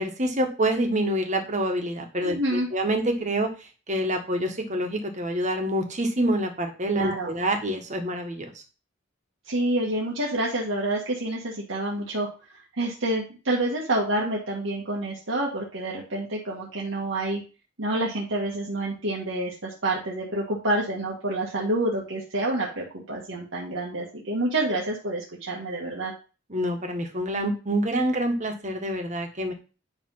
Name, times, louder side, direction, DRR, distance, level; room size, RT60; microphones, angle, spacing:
voice 1, 0.0-3.5 3.9-8.5 26.5-29.5, right 1 dB, 40° right, 4 dB, 1.6 m, -26 dB
voice 2, 2.2-2.7 6.9-7.3 9.5-12.3 12.8-17.4 17.8-26.1, right 1 dB, 80° right, -3 dB, 1.7 m, -28 dB
9.8 x 3.6 x 5.6 m, 0.34 s
head